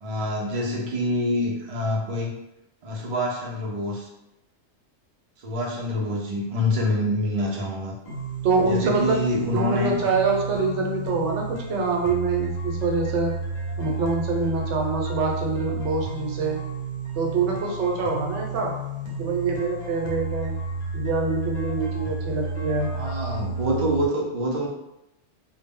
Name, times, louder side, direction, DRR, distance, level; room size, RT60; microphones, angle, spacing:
voice 1, 0.0-2.3 2.8-4.1 5.4-7.9 8.6-10.0 22.9-24.7, left 1 dB, 50° right, -2 dB, 0.4 m, -26 dB
sound 1, 8.1-24.1, right 3 dB, 45° left, 0.7 m, -32 dB
voice 2, 8.4-9.2 9.5-13.3 13.8-16.6 17.2-18.7 19.2-20.6 20.9-22.9, right 3 dB, 80° right, 0 dB, 0.9 m, -25 dB
2.0 x 2.0 x 3.5 m, 0.89 s
omnidirectional pair, 1.2 m